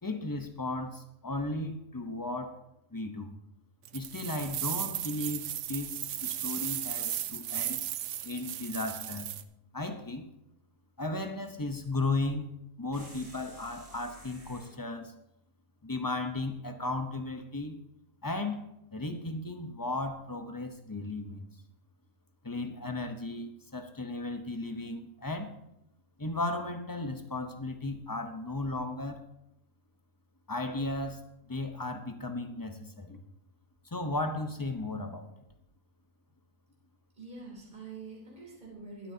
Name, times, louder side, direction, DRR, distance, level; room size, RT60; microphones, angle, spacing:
voice 1, 0.0-2.6 2.9-3.3 3.9-7.8 8.2-9.3 9.7-10.2 11.0-12.5 12.8-15.1 15.8-17.8 18.2-18.6 18.9-21.5 22.4-25.5 26.2-29.2 30.5-33.2 33.8-35.3, left 2 dB, 20° left, 6 dB, 0.6 m, -35 dB
sound 1, 3.9-9.4, right 11 dB, 65° right, 0.8 m, -35 dB
sound 2, 12.9-14.8, equal, 80° right, 4.1 m, -52 dB
voice 2, 37.2-39.1, right 3 dB, 30° right, -4 dB, 3.6 m, -45 dB
20.5 x 8.7 x 2.8 m, 0.84 s
omnidirectional pair, 1.6 m